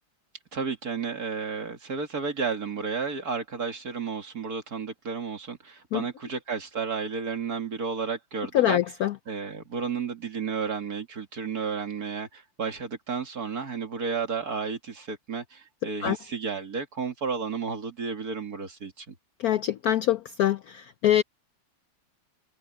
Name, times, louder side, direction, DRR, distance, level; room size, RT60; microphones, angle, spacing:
voice 1, 0.5-8.8 9.3-19.1, right 5 dB, 45° right, 2.7 m, -32 dB
voice 2, 8.5-9.1 16.0-16.2 19.4-21.2, left 12 dB, 90° left, 0.8 m, -24 dB
omnidirectional pair, 2.3 m